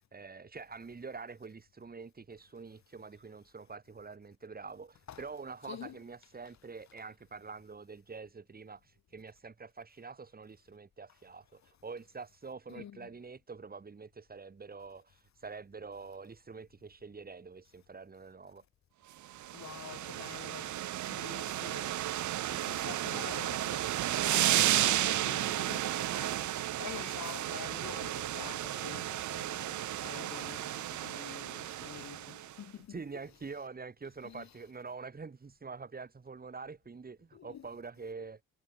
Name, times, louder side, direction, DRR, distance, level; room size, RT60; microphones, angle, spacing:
voice 1, 0.1-18.6 32.9-38.4, right 4 dB, 30° right, 4.6 m, -46 dB
voice 2, 12.7-13.1 19.5-20.8 21.0-22.0 22.5-33.0 34.2-34.5 37.3-37.7, left 10 dB, 65° left, 7.4 m, -47 dB
sound 1, 19.3-32.5, right 13 dB, 70° right, 1.3 m, -33 dB
cardioid pair, 90°, 30 cm